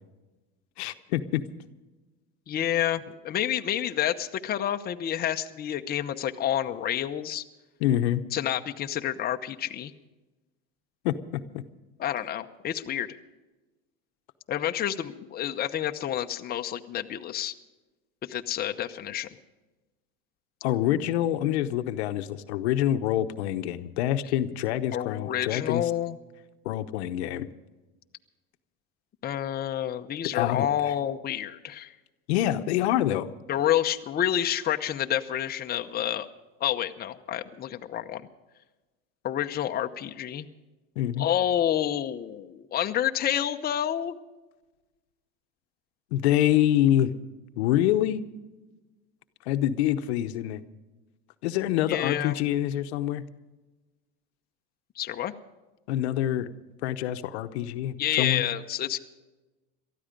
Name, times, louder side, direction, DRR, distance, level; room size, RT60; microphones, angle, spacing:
voice 1, 0.8-1.4 7.8-8.2 11.0-11.6 20.6-25.9 26.6-27.5 30.3-31.0 32.3-33.3 41.0-41.3 46.1-47.1 47.6-48.2 49.5-50.6 51.4-53.2 55.9-56.5 56.8-58.4, left 12 dB, 85° left, 9 dB, 1.0 m, -26 dB
voice 2, 2.5-7.4 8.3-9.9 12.0-13.1 14.5-17.5 18.2-19.3 24.9-26.2 29.2-31.9 33.5-36.3 36.6-38.2 39.2-40.5 41.2-44.2 51.9-52.4 55.0-55.3 58.0-59.0, left 11 dB, 30° left, 6 dB, 0.8 m, -29 dB
19.0 x 13.5 x 5.2 m, 1.2 s
supercardioid pair, 120°, 32 cm